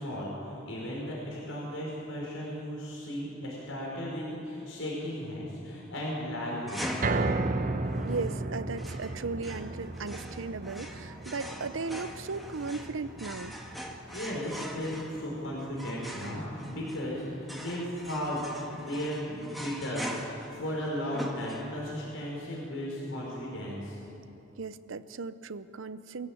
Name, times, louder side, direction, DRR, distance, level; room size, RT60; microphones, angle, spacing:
voice 1, 0.0-7.1 14.1-24.0, equal, 85° left, -4 dB, 4.9 m, -35 dB
sound 1, 6.7-22.0, equal, ahead, 1.9 m, -42 dB
sound 2, 7.0-19.3 19.7-19.8 20.2-20.3, right 2 dB, 45° right, 0.9 m, -36 dB
voice 2, 8.0-13.6 24.6-26.3, right 4 dB, 85° right, 14 dB, 0.7 m, -36 dB
23.0 x 16.5 x 8.7 m, 3.0 s
head